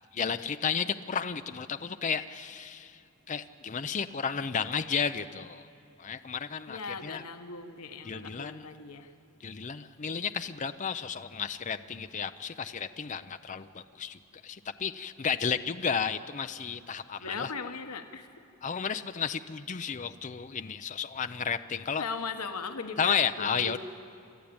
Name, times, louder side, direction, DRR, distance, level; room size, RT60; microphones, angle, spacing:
voice 1, 0.1-3.0 3.3-5.7 6.0-7.2 8.0-8.7 9.4-17.5 18.6-22.1 23.0-23.8, left 6 dB, 35° left, 9 dB, 0.5 m, -33 dB
voice 2, 6.7-9.1 17.2-18.3 22.0-23.8, left 4 dB, 85° left, 7 dB, 1.1 m, -38 dB
29.0 x 13.5 x 8.8 m, 2.7 s
head